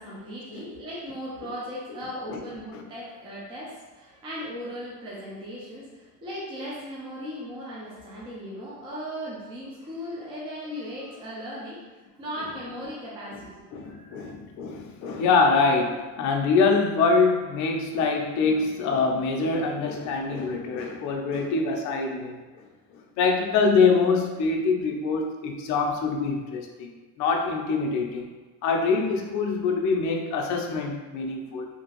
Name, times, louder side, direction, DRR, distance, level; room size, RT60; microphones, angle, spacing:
voice 1, 0.0-11.8 12.2-14.3, equal, 15° right, -7 dB, 0.4 m, -37 dB
voice 2, 13.7-22.4 23.2-26.9 27.2-28.3 28.6-31.7, left 4 dB, 55° left, 2 dB, 0.5 m, -24 dB
2.8 x 2.6 x 2.8 m, 1.3 s
cardioid pair, 170°, 35 cm